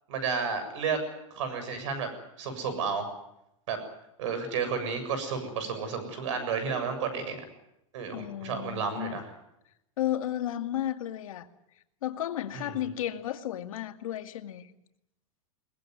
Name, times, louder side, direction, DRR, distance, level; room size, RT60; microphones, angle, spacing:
voice 1, 0.1-1.0 1.3-2.1 2.4-3.1 3.7-3.8 4.2-7.4 7.9-9.3 12.5-12.9, right 5 dB, 60° right, 7.4 m, -32 dB
voice 2, 8.1-9.2 10.0-11.5 12.0-14.7, left 12 dB, 80° left, 2.2 m, -33 dB
21.5 x 20.5 x 9.5 m
supercardioid pair, 170°, 17 cm